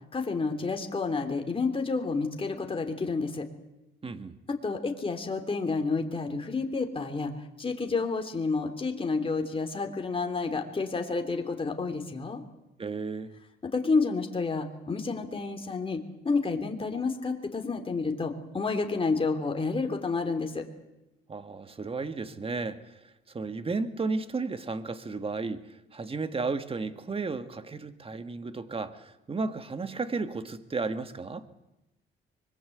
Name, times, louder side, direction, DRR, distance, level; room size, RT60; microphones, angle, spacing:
voice 1, 0.1-3.4 4.5-7.3 7.6-12.4 13.7-20.6, left 4 dB, 25° left, 4 dB, 3.2 m, -30 dB
voice 2, 4.0-4.4 12.8-13.3 21.3-22.8 23.3-31.5, right 4 dB, 30° right, 9 dB, 1.8 m, -33 dB
24.5 x 21.5 x 8.0 m, 0.95 s
cardioid pair, 90°, 20 cm